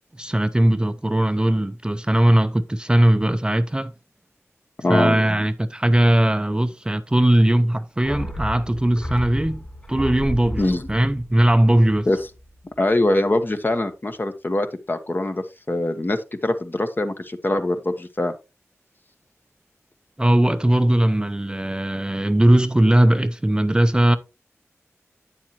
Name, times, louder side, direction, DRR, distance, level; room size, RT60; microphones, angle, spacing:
voice 1, 0.2-3.9 4.9-12.1 20.2-24.2, right 1 dB, 15° right, 0.5 m, -19 dB
voice 2, 4.8-5.2 10.6-10.9 12.1-12.2 12.8-18.3, left 1 dB, 40° left, 1.1 m, -23 dB
sound 1, 8.0-12.6 12.9-13.0, left 1 dB, 25° left, 3.1 m, -33 dB
8.8 x 7.2 x 2.9 m
cardioid pair, 45°, 5 cm